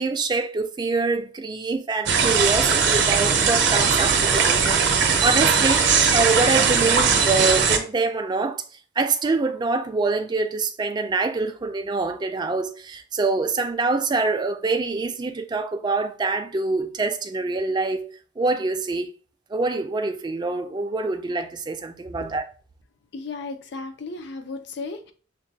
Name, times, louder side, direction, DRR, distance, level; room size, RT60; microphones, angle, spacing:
voice 1, 0.0-5.9 6.1-8.6 9.0-19.1 19.5-22.5, right 3 dB, 20° right, 0.3 m, -25 dB
sound 1, 2.1-7.8, right 6 dB, 60° right, 0.6 m, -19 dB
voice 2, 23.1-25.1, left 3 dB, 60° left, 0.5 m, -34 dB
5.9 x 2.2 x 2.7 m
head